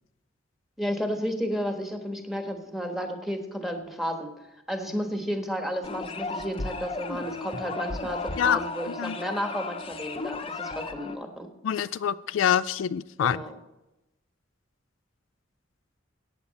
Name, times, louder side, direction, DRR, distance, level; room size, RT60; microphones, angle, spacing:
voice 1, 0.8-4.3 4.7-11.5 13.2-13.5, equal, ahead, 4 dB, 1.4 m, -32 dB
sound 1, 5.8-11.2, left 3 dB, 30° left, 0.7 m, -35 dB
voice 2, 11.6-13.4, left 9 dB, 80° left, 16 dB, 0.3 m, -25 dB
14.0 x 9.2 x 4.2 m, 0.96 s
head